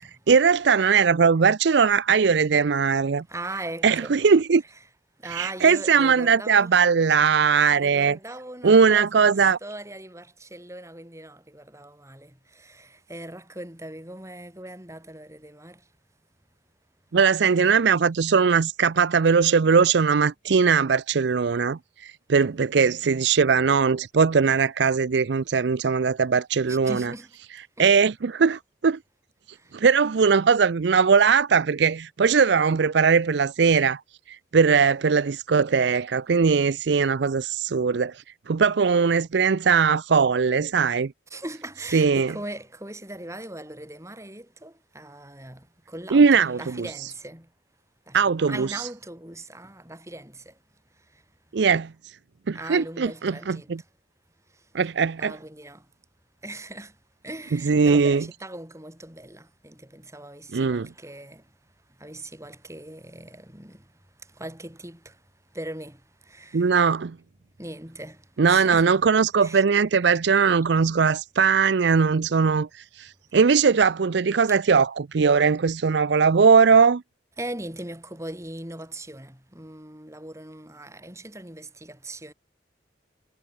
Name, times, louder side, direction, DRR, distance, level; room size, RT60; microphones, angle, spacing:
voice 1, 0.3-3.2 3.8-4.6 5.3-8.2 8.6-9.6 17.1-27.1 27.8-29.0 29.7-34.0 34.3-41.1 41.9-42.3 46.1-46.7 48.1-48.7 51.5-51.9 52.5-53.8 54.7-55.3 57.5-58.2 60.5-60.9 66.5-67.2 68.4-77.0, right 5 dB, 65° right, 0.5 m, -20 dB
voice 2, 3.3-4.2 5.2-6.7 7.7-15.8 26.7-27.3 27.8-27.9 41.3-47.5 48.1-48.2 48.5-50.5 52.5-53.7 55.2-55.9 56.4-56.9 57.2-61.4 62.0-63.8 64.3-65.2 65.5-66.8 67.6-69.0 69.4-69.7 77.4-82.3, right 1 dB, 15° right, 5.5 m, -39 dB
head